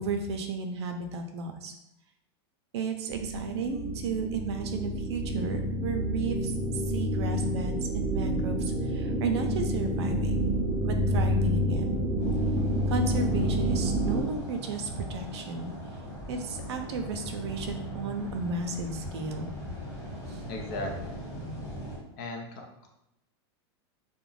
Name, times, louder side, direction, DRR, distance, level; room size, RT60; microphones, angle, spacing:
voice 1, 0.0-1.7 2.7-12.0 12.9-15.7 16.3-19.5 20.3-20.4, right 4 dB, 75° right, 5 dB, 0.5 m, -34 dB
sound 1, 3.1-14.2, equal, 10° right, 0.5 m, -28 dB
sound 2, 12.2-22.0, equal, 25° left, 1.2 m, -40 dB
voice 2, 20.5-21.1 22.2-22.9, left 2 dB, 50° left, 2 dB, 0.5 m, -37 dB
2.4 x 2.1 x 3.1 m, 0.85 s
supercardioid pair, 160°, 14 cm